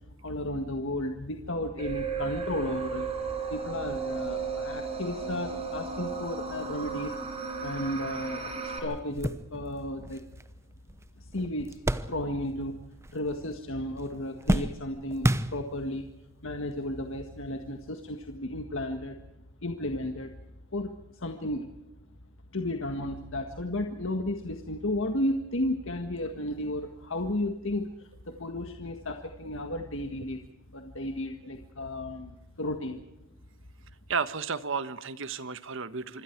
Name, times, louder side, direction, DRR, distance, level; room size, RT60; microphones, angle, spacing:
voice 1, 0.2-3.1 3.5-7.2 7.6-10.2 11.2-11.8 12.1-12.8 13.1-16.1 16.4-19.2 19.6-20.3 20.7-21.7 22.5-30.4 30.7-33.0, left 1 dB, 65° left, 4 dB, 1.8 m, -33 dB
sound 1, 1.8-8.8, right 5 dB, 30° right, 6.3 m, -34 dB
sound 2, 8.4-8.5 8.9-12.7 12.9-13.7 14.0-16.0 16.8-16.9 18.2-18.3, right 1 dB, 15° right, 0.9 m, -32 dB
voice 2, 34.1-36.2, right 5 dB, 65° right, 12 dB, 1.3 m, -32 dB
26.5 x 25.5 x 4.7 m, 0.95 s
head